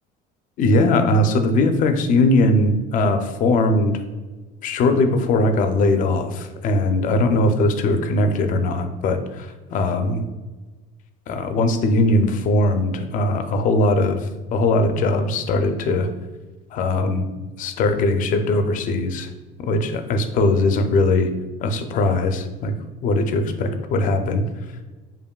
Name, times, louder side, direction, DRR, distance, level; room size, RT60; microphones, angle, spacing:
voice 1, 0.6-4.0 4.6-10.2 11.3-16.1 16.7-17.3 17.6-19.3 19.6-21.3 21.6-22.7 23.0-24.4, left 2 dB, 45° left, 8 dB, 0.4 m, -20 dB
5.1 x 2.5 x 2.2 m, 1.2 s
cardioid pair, 135°, 20 cm